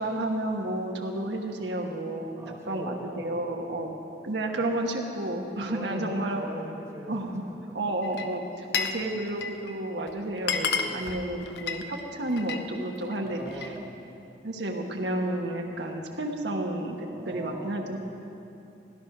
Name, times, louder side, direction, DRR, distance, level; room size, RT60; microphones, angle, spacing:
voice 1, 0.0-3.9 4.2-6.5 7.1-7.4 7.7-13.4 14.4-18.0, right 1 dB, 75° right, 1 dB, 1.3 m, -31 dB
voice 2, 2.3-3.9 4.6-4.7 5.7-7.5 9.0-9.1 10.4-11.7 13.2-14.0 15.6-15.8 17.1-18.0, equal, 15° right, -1 dB, 1.5 m, -42 dB
Glass, 8.0-9.0 9.3-9.7 10.1-10.2 10.4-12.7 13.0-13.8, left 6 dB, 65° left, 0.8 m, -31 dB
16.0 x 11.0 x 6.0 m, 2.8 s
head